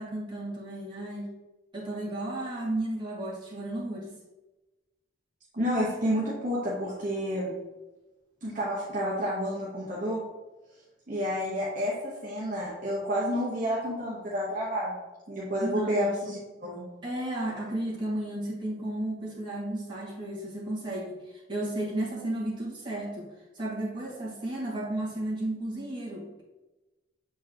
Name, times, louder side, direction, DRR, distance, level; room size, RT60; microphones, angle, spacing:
voice 1, 0.0-1.3 1.7-4.1 15.6-16.1 17.0-21.2 21.5-26.4, right 1 dB, 25° right, -6 dB, 2.0 m, -33 dB
voice 2, 5.5-7.5 8.4-10.2 11.1-15.0 15.3-16.8, equal, 45° right, -6 dB, 1.2 m, -30 dB
7.2 x 4.6 x 2.9 m, 1.1 s
head